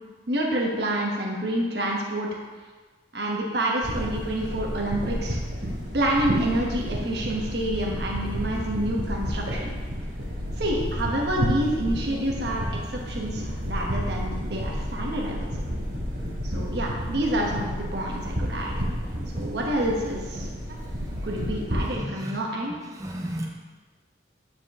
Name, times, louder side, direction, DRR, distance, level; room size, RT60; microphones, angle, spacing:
voice 1, 0.3-2.3 3.1-5.4 5.9-9.8 10.6-15.5 16.4-18.9 19.3-20.5 21.2-22.8, right 1 dB, 60° right, -2 dB, 1.2 m, -28 dB
sound 1, 3.8-22.0, equal, 85° right, 2.1 m, -31 dB
voice 2, 21.0-21.4 21.9-22.3 23.0-23.5, equal, 15° right, -2 dB, 0.9 m, -34 dB
9.3 x 4.5 x 3.7 m, 1.4 s
head